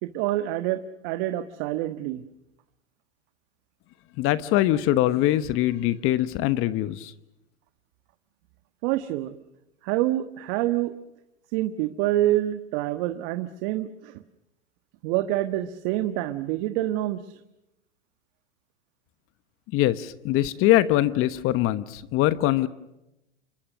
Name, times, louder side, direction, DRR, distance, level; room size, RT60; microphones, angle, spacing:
voice 1, 0.0-2.2 8.8-9.4 9.8-10.9 11.5-14.2 15.0-17.4, right 14 dB, 50° right, 10 dB, 1.5 m, -27 dB
voice 2, 4.2-7.1 19.7-22.7, left 14 dB, 40° left, 14 dB, 1.1 m, -23 dB
28.5 x 23.5 x 6.4 m, 0.90 s
hypercardioid pair, 110°, 35 cm